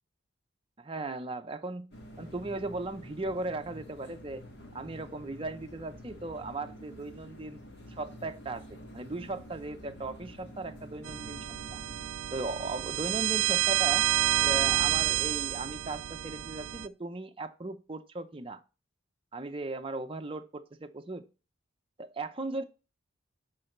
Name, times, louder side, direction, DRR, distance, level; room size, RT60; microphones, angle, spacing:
voice 1, 0.8-4.4 4.7-7.6 7.9-11.8 12.3-14.1 14.4-18.6 19.3-21.3 22.0-22.6, right 2 dB, 25° right, 0.6 m, -37 dB
sound 1, 1.9-12.1, equal, 55° left, 2.1 m, -48 dB
sound 2, 11.0-16.9, right 15 dB, 85° right, 0.4 m, -29 dB
10.0 x 4.0 x 6.5 m
head